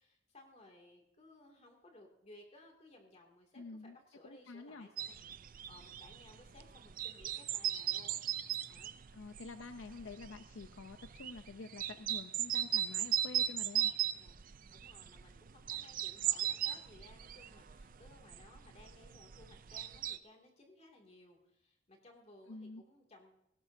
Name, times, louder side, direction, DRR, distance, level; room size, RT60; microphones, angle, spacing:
voice 1, 0.0-5.2 5.7-8.2 8.7-9.0 14.1-14.4 14.7-23.4, left 2 dB, 35° left, 2 dB, 2.4 m, -60 dB
voice 2, 3.6-4.0 4.2-4.9 9.1-13.9 22.5-22.8, left 3 dB, 75° left, 8 dB, 0.6 m, -48 dB
sound 1, 5.0-20.2, right 11 dB, 45° right, 0.5 m, -38 dB
18.0 x 17.5 x 2.7 m, 0.83 s
head